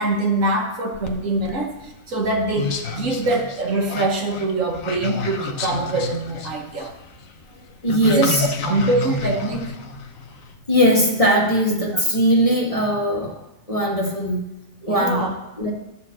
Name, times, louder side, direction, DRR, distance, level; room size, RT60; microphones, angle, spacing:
voice 1, 0.0-6.9 8.0-9.7 11.9-12.0 14.8-15.3, right 2 dB, 65° right, 1 dB, 1.6 m, -24 dB
sound 1, 0.9-10.5, left 5 dB, 70° left, 1.3 m, -30 dB
voice 2, 7.8-8.5 10.7-13.3 13.7-14.4 14.8-15.2 15.6-15.7, equal, 25° left, -3 dB, 1.7 m, -19 dB
11.5 x 4.4 x 7.4 m, 0.93 s
omnidirectional pair, 1.5 m